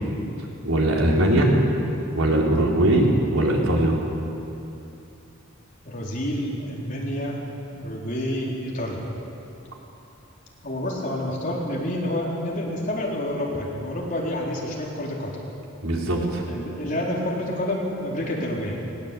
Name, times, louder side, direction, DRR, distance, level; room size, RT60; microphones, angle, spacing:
voice 1, 0.6-1.5 2.1-4.0 15.8-16.4, right 1 dB, 80° right, -2 dB, 4.1 m, -20 dB
voice 2, 5.8-7.4 7.7-9.0 10.6-15.3 16.5-18.8, left 1 dB, 40° left, -3 dB, 4.2 m, -28 dB
20.0 x 20.0 x 8.5 m, 2.9 s
head